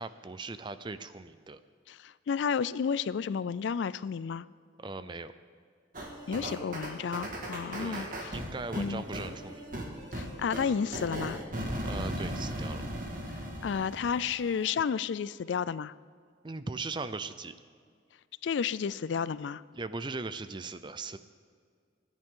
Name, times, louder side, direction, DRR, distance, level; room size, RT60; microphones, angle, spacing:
voice 1, 0.0-1.6 4.8-5.3 7.8-9.6 11.8-12.8 16.4-17.5 19.7-21.2, right 3 dB, 25° right, 12 dB, 0.5 m, -39 dB
voice 2, 1.9-4.5 6.3-8.1 8.8-9.0 10.1-11.4 13.6-15.9 18.4-19.6, left 6 dB, 70° left, 18 dB, 0.4 m, -31 dB
sound 1, 5.9-14.7, equal, 45° right, 1.9 m, -38 dB
25.5 x 10.5 x 3.8 m, 2.1 s
head